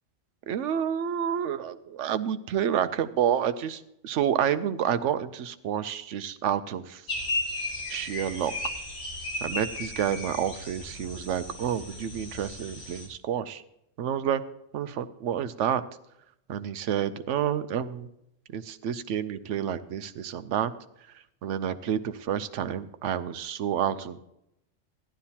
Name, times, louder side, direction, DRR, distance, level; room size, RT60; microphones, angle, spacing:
voice 1, 0.5-7.1 7.9-8.5 9.4-13.6 14.0-14.4 14.7-15.8 16.5-18.1 18.5-20.7 21.4-24.2, right 9 dB, 75° right, 11 dB, 1.0 m, -29 dB
sound 1, 7.1-13.1, left 2 dB, 60° left, 2.5 m, -35 dB
15.0 x 11.5 x 2.8 m, 0.80 s
omnidirectional pair, 1.3 m